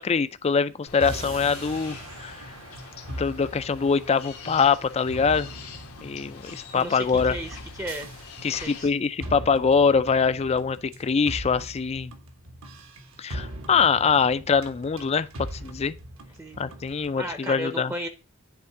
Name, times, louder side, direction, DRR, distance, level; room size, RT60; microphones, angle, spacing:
voice 1, 0.0-2.5 3.1-5.5 6.0-7.4 8.4-12.1 13.2-15.3 15.6-15.9 16.6-17.9, left 5 dB, 30° left, 0.4 m, -23 dB
sound 1, 0.9-8.9, left 5 dB, 90° left, 1.4 m, -44 dB
sound 2, 1.0-17.4, right 1 dB, 65° right, 1.2 m, -40 dB
voice 2, 6.7-8.1 8.6-8.9 16.4-16.6 17.1-18.1, equal, 15° right, 0.7 m, -35 dB
9.7 x 3.4 x 4.5 m
head